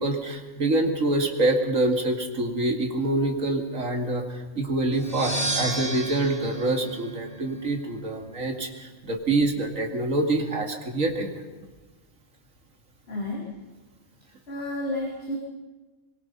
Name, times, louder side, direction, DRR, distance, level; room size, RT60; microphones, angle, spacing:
voice 1, 0.0-11.3, right 2 dB, 80° right, 3 dB, 2.8 m, -26 dB
sound 1, 4.9-7.8, right 2 dB, 60° right, 3.4 m, -32 dB
voice 2, 13.1-13.5 14.5-15.4, left 1 dB, 50° left, -3 dB, 3.7 m, -31 dB
24.5 x 22.5 x 5.5 m, 1.2 s
omnidirectional pair, 1.3 m